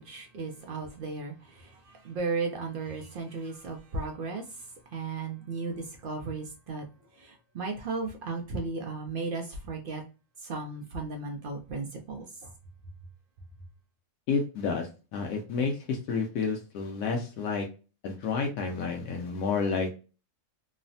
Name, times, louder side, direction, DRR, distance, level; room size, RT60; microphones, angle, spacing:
voice 1, 0.0-4.4 4.9-6.8 7.2-10.0 10.4-12.5, right 3 dB, 65° right, 0.5 m, -35 dB
voice 2, 14.3-17.7 18.0-19.9, left 5 dB, 85° left, 1.0 m, -30 dB
3.1 x 2.0 x 2.6 m
omnidirectional pair, 1.4 m